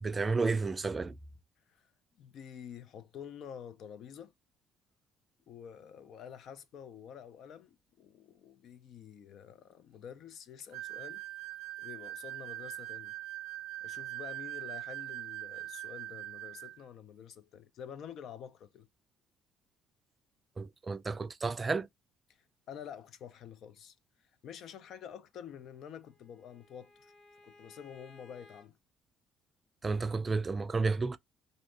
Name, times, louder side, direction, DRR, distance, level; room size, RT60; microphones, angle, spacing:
voice 1, 0.0-1.2 20.6-21.9 29.8-31.2, right 4 dB, 30° right, 0.4 m, -31 dB
voice 2, 1.7-4.3 5.5-11.2 11.8-13.2 13.8-18.9 22.3-27.1 27.4-28.8, left 8 dB, 65° left, 0.5 m, -48 dB
sound 1, 10.7-16.8, right 16 dB, 80° right, 0.5 m, -42 dB
Bowed string instrument, 25.5-28.7, left 2 dB, 40° left, 1.3 m, -60 dB
2.7 x 2.5 x 3.3 m
supercardioid pair, 80°, 0 cm